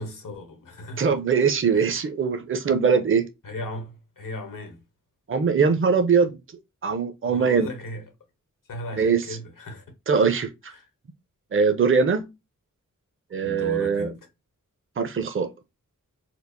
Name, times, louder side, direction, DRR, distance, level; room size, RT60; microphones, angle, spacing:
voice 1, 0.0-1.1 1.7-1.9 3.4-4.8 7.3-8.1 8.7-9.8 10.7-10.9 13.4-14.2, left 1 dB, 85° left, 1.2 m, -36 dB
voice 2, 1.0-3.3 5.3-6.4 6.8-7.7 8.9-9.2 10.1-10.7 11.5-12.2 13.3-14.1 15.0-15.5, right 5 dB, 40° right, 0.6 m, -21 dB
4.4 x 2.4 x 2.6 m
wide cardioid pair, 90°, 31 cm